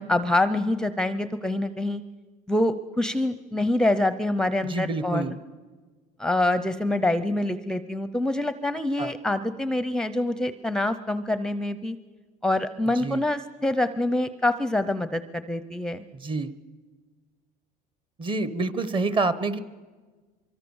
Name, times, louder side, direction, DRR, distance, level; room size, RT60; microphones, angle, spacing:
voice 1, 0.0-2.0 2.5-5.2 6.2-12.0 12.4-16.0, left 1 dB, 5° left, 12 dB, 0.6 m, -25 dB
voice 2, 4.7-5.4 9.0-9.1 13.0-13.2 16.1-16.5 18.2-19.6, right 3 dB, 30° right, 15 dB, 1.1 m, -27 dB
24.0 x 24.0 x 7.1 m, 1.4 s
cardioid pair, 135°, 18 cm